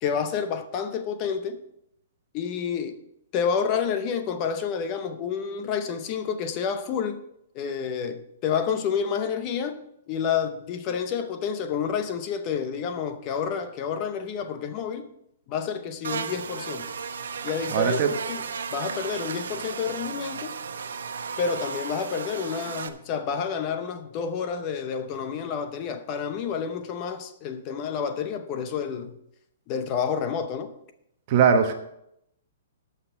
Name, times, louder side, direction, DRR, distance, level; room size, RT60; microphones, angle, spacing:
voice 1, 0.0-1.6 2.3-3.0 3.3-7.2 7.5-9.8 10.1-15.1 15.5-16.9 17.4-18.0 18.3-18.4 18.7-20.5 21.4-29.2 29.7-30.7, left 7 dB, 25° left, 0.7 m, -29 dB
Buzz, 16.0-22.9, right 6 dB, 85° right, 0.9 m, -34 dB
voice 2, 17.7-18.1 31.3-31.7, right 7 dB, 35° right, 1.1 m, -20 dB
13.0 x 5.8 x 5.9 m
hypercardioid pair, 170°, 0 cm